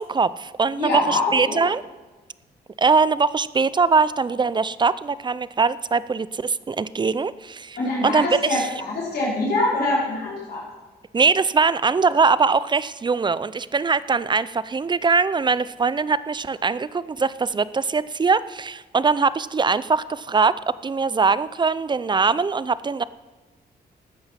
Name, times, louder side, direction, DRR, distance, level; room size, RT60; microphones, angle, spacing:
voice 1, 0.0-1.8 2.8-8.7 11.1-23.0, right 4 dB, 25° right, 17 dB, 0.4 m, -22 dB
voice 2, 0.8-1.6 7.8-10.6, left 2 dB, 70° left, -7 dB, 4.3 m, -24 dB
14.0 x 9.3 x 5.8 m, 1.3 s
cardioid pair, 85°, 17 cm